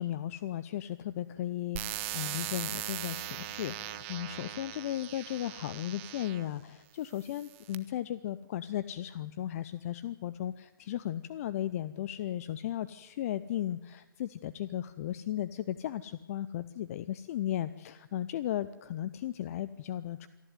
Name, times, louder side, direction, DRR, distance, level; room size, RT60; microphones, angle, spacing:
voice 1, 0.0-20.3, left 12 dB, 40° left, 15 dB, 0.7 m, -36 dB
sound 1, 1.8-6.5 7.2-7.8, right 15 dB, 35° right, 1.3 m, -39 dB
27.0 x 11.5 x 9.4 m, 0.98 s
figure-of-eight pair, 130°, 12 cm